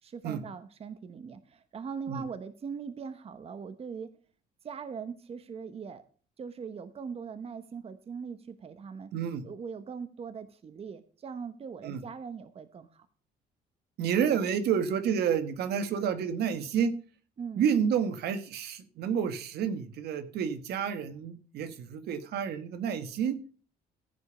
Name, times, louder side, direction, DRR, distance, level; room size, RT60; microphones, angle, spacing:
voice 1, 0.0-4.1 4.6-6.0 6.4-9.1 9.4-13.1 16.4-16.6 17.4-17.6, right 6 dB, 35° right, 11 dB, 1.1 m, -41 dB
voice 2, 9.1-9.4 11.8-12.0 14.0-16.9 17.6-23.6, right 7 dB, 70° right, 10 dB, 1.5 m, -30 dB
15.5 x 5.2 x 7.0 m, 0.40 s
cardioid pair, 110°, 17 cm